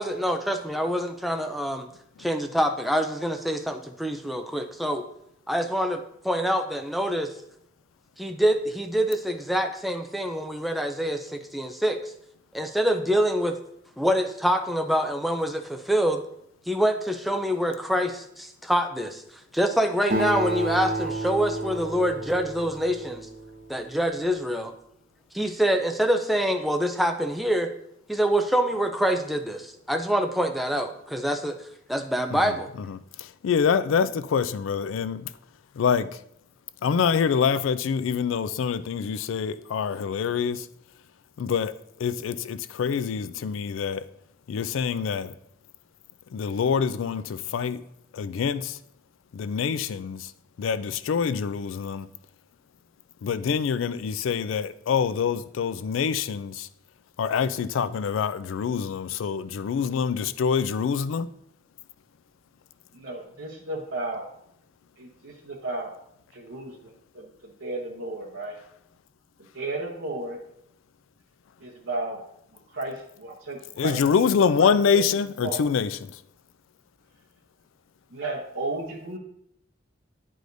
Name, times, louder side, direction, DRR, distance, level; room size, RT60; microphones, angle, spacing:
voice 1, 0.0-1.9 2.2-5.0 5.5-7.3 8.2-12.0 12.5-13.5 14.0-16.2 16.7-19.2 19.5-23.3 23.7-24.7 25.3-27.7 28.1-31.6 31.9-32.7, equal, ahead, 0.3 m, -25 dB
Acoustic guitar, 20.1-23.9, right 1 dB, 45° right, 0.8 m, -31 dB
voice 2, 32.9-35.3 35.8-36.1 36.8-40.7 41.4-41.7 42.0-44.0 44.5-45.3 46.3-47.8 48.1-48.8 49.3-50.3 50.6-52.1 53.2-56.7 57.2-61.3 73.8-76.1, left 6 dB, 85° left, 0.3 m, -25 dB
voice 3, 62.9-64.2 65.0-65.9 66.3-68.6 69.5-70.4 71.6-72.2 72.7-74.3 74.6-75.6 78.1-79.2, right 2 dB, 85° right, 0.8 m, -34 dB
9.2 x 4.9 x 2.6 m
head